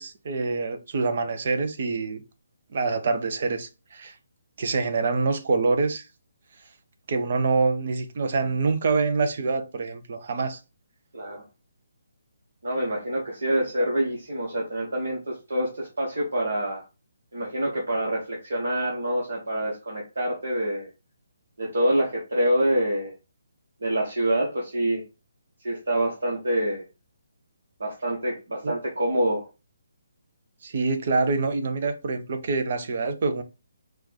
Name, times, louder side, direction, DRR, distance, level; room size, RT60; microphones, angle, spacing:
voice 1, 0.0-2.2 2.7-4.1 4.6-6.0 7.1-10.6 28.6-28.8 30.6-33.4, right 4 dB, 45° right, 0.7 m, -26 dB
voice 2, 12.6-16.8 17.3-20.9 21.6-23.1 23.8-25.0 25.6-26.8 27.8-29.5, right 1 dB, 65° right, 1.4 m, -26 dB
4.5 x 2.5 x 4.1 m
figure-of-eight pair, 140°, 0 cm